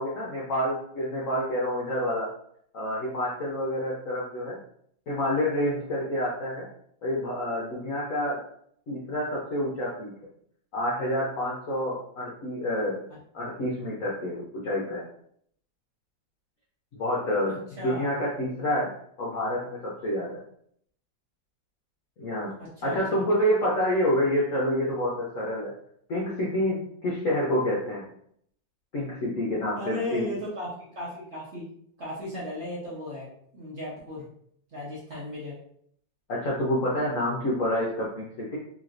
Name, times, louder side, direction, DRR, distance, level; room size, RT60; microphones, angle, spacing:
voice 1, 0.0-2.3 2.7-4.6 5.1-6.7 7.0-8.4 8.9-10.1 10.7-13.0 13.3-15.0 16.9-18.9 19.2-20.4 22.2-25.7 26.1-28.1 28.9-30.3 36.3-38.6, left 1 dB, 65° left, -5 dB, 0.8 m, -28 dB
voice 2, 17.4-18.1 22.6-23.2 29.8-31.6 32.0-34.3 34.7-35.6, left 1 dB, 45° right, -7 dB, 1.0 m, -36 dB
3.1 x 3.0 x 2.5 m, 0.66 s
omnidirectional pair, 2.1 m